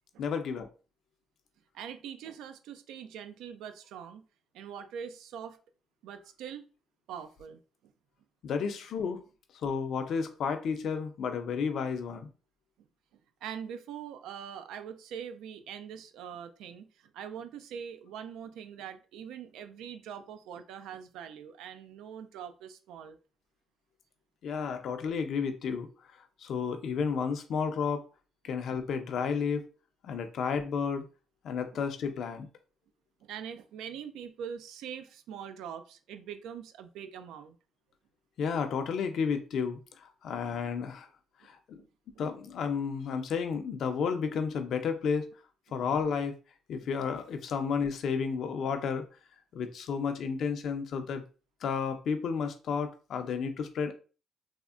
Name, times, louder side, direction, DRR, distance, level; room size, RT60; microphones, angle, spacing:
voice 1, 0.2-0.7 8.4-9.2 9.6-12.3 24.4-25.9 26.4-28.0 28.4-29.7 30.0-31.0 31.4-32.5 38.4-41.1 41.4-41.8 42.2-45.3 45.7-46.3 46.7-49.1 49.5-51.2 51.6-53.9, left 6 dB, 70° left, 0.4 m, -32 dB
voice 2, 1.7-4.2 4.5-5.6 6.0-6.6 7.1-7.9 13.4-23.2 33.2-37.6 41.8-41.9, right 8 dB, 90° right, 0.3 m, -43 dB
3.5 x 2.1 x 2.3 m
cardioid pair, 90°, 0 cm